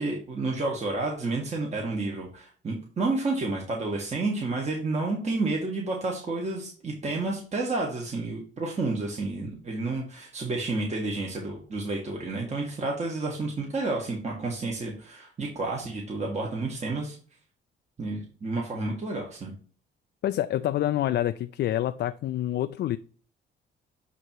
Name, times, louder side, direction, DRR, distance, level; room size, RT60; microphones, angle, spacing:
voice 1, 0.0-17.2 18.0-19.5, right 3 dB, 35° right, -1 dB, 1.6 m, -30 dB
voice 2, 20.2-23.0, left 12 dB, 60° left, 11 dB, 0.4 m, -27 dB
8.2 x 3.0 x 4.5 m, 0.42 s
cardioid pair, 90°, 20 cm